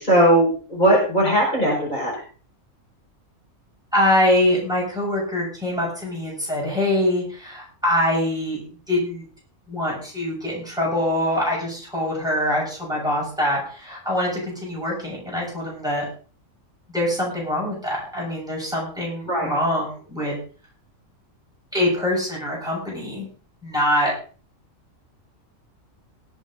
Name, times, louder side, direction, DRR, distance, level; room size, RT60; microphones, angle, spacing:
voice 1, 0.0-2.1 19.2-19.5, right 1 dB, 35° left, -4 dB, 5.3 m, -18 dB
voice 2, 3.9-8.6 8.9-9.2 9.7-16.0 16.9-20.3 21.7-23.3 23.6-24.1, left 1 dB, 5° right, -4 dB, 6.8 m, -24 dB
19.0 x 8.2 x 3.8 m, 0.39 s
omnidirectional pair, 1.4 m